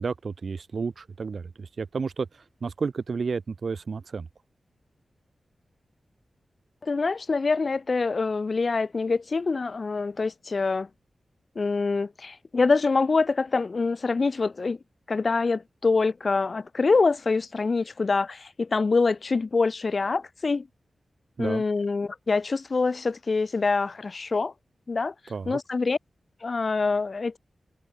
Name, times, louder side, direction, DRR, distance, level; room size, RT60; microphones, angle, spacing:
voice 1, 0.0-4.3 21.4-21.6 25.3-25.6, right 5 dB, 55° right, 1.4 m, -31 dB
voice 2, 6.8-10.9 11.6-14.8 15.1-20.7 21.4-24.5 24.9-25.1 25.5-26.0 26.4-27.4, left 4 dB, 40° left, 0.7 m, -25 dB
wide cardioid pair, 145°, 0 cm